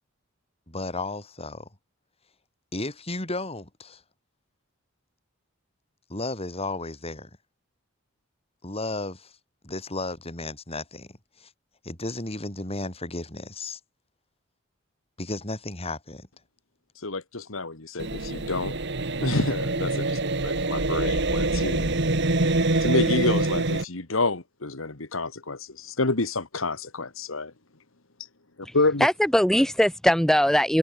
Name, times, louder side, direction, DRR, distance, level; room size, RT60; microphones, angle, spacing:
voice 1, 0.7-1.7 2.7-4.0 6.1-7.3 8.6-9.4 9.6-11.5 11.8-13.8 15.2-16.3, left 2 dB, 30° left, 5.8 m, -34 dB
voice 2, 17.0-18.7 19.2-21.9 22.8-27.5 28.7-29.1, left 3 dB, 75° left, 2.0 m, -28 dB
sound 1, 18.0-23.8, right 2 dB, 55° right, 2.2 m, -25 dB
voice 3, 28.6-30.8, equal, ahead, 0.8 m, -21 dB
head